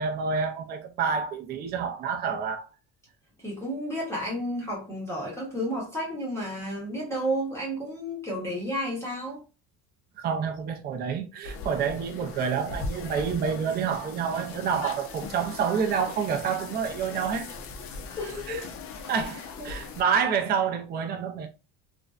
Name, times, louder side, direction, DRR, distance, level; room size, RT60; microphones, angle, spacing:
voice 1, 0.0-2.7 10.2-17.6 18.5-18.6 19.1-21.5, right 6 dB, 30° right, 0.4 m, -28 dB
voice 2, 3.4-9.4 18.2-18.7 19.0-19.1 19.6-19.8, equal, 10° left, 0.7 m, -32 dB
sound 1, 11.4-20.0, left 4 dB, 45° left, 0.5 m, -39 dB
2.5 x 2.1 x 2.3 m
cardioid pair, 145°, 32 cm